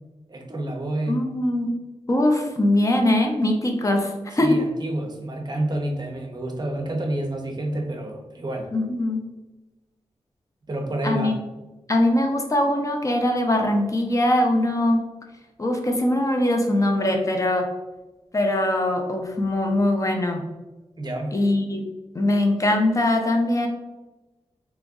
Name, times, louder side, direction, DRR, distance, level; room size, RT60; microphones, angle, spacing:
voice 1, 0.3-1.2 4.4-8.7 10.7-11.4 21.0-21.3, right 1 dB, 35° right, 3 dB, 0.6 m, -28 dB
voice 2, 1.1-1.7 2.1-4.6 8.7-9.3 11.0-11.4 11.9-15.1 15.6-17.7 18.3-20.4 21.3-21.8 22.1-23.7, left 1 dB, 30° left, 3 dB, 0.5 m, -22 dB
3.0 x 2.5 x 3.5 m, 1.1 s
wide cardioid pair, 85°, 12 cm